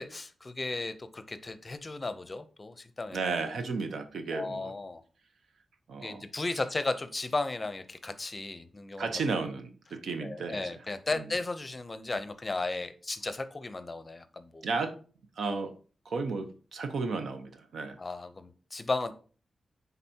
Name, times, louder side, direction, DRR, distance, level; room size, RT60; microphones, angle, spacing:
voice 1, 0.0-3.2 4.3-5.0 6.0-9.1 10.2-14.7 18.0-19.1, left 3 dB, 25° left, 11 dB, 0.6 m, -35 dB
voice 2, 3.1-4.7 5.9-6.2 9.0-10.7 11.1-11.3 14.6-15.0 15.4-15.7 16.0-18.0, right 4 dB, 85° right, 8 dB, 0.9 m, -33 dB
10.0 x 4.0 x 2.8 m, 0.39 s
wide cardioid pair, 120°, 0 cm